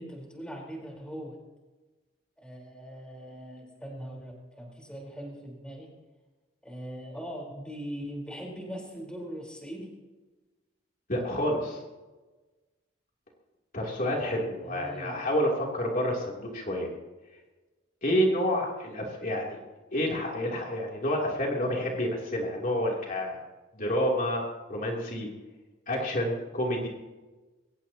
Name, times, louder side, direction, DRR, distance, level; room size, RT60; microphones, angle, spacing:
voice 1, 0.0-1.4 2.4-5.9 6.6-9.9 14.6-15.2, equal, 5° left, -1 dB, 4.3 m, -40 dB
voice 2, 11.1-11.8 13.7-16.9 18.0-19.6 19.9-23.4 23.7-24.4 24.7-25.3 25.9-26.9, equal, 45° left, -2 dB, 3.2 m, -29 dB
23.0 x 19.5 x 3.0 m, 1.2 s
head